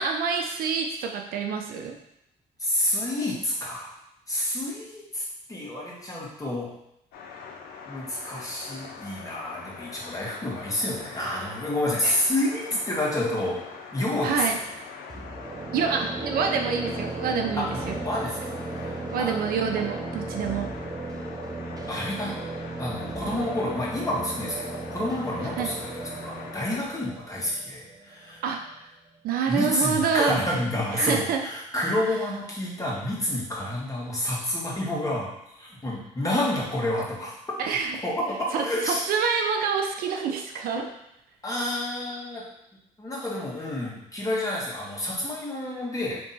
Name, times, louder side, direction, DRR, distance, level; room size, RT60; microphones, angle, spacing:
voice 1, 0.0-2.0 12.0-12.2 14.2-14.6 15.7-18.0 19.1-20.8 25.6-25.7 28.4-28.6 29.2-30.5 30.9-31.4 37.6-38.0 38.5-40.8, right 6 dB, 75° right, 3 dB, 0.6 m, -27 dB
voice 2, 2.6-3.9 4.3-5.2 5.5-6.7 7.9-13.6 13.9-14.6 17.6-18.5 19.2-19.6 21.9-22.4 22.8-28.4 29.5-35.3 35.6-37.3 38.0-39.0 40.8-40.9 41.4-42.4 43.0-46.2, left 1 dB, 20° left, -4 dB, 1.6 m, -29 dB
sound 1, 7.1-26.9, left 5 dB, 80° left, 0.5 m, -43 dB
sound 2, 15.1-28.8, right 2 dB, 25° right, 0.6 m, -36 dB
3.5 x 3.0 x 4.2 m, 0.81 s
supercardioid pair, 75°, 15 cm